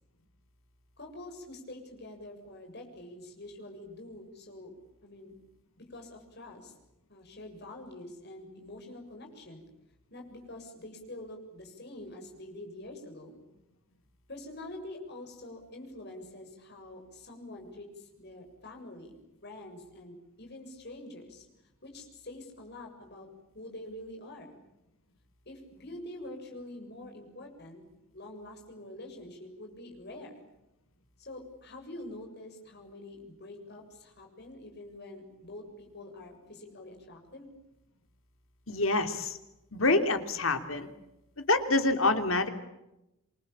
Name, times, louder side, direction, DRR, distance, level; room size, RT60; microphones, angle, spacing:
voice 1, 1.0-4.7 5.0-5.3 5.9-6.7 7.1-9.7 10.1-13.4 14.3-21.5 21.8-23.3 23.5-24.6 25.5-27.8 28.1-30.4 31.2-37.5, left 1 dB, 50° left, 2 dB, 7.2 m, -46 dB
voice 2, 38.7-39.4 39.7-40.9 41.4-42.5, left 2 dB, 75° left, 8 dB, 3.1 m, -26 dB
28.0 x 23.5 x 8.7 m, 0.93 s
head